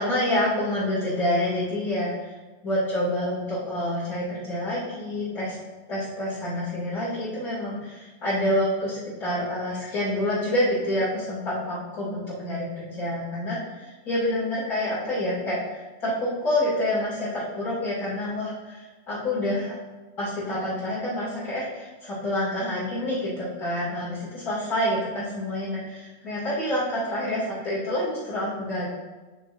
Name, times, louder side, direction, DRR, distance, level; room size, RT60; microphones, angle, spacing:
voice 1, 0.0-2.3 2.6-5.6 5.9-19.7 20.2-28.9, left 1 dB, 60° left, -11 dB, 2.9 m, -27 dB
11.5 x 6.0 x 2.5 m, 1.2 s
omnidirectional pair, 1.9 m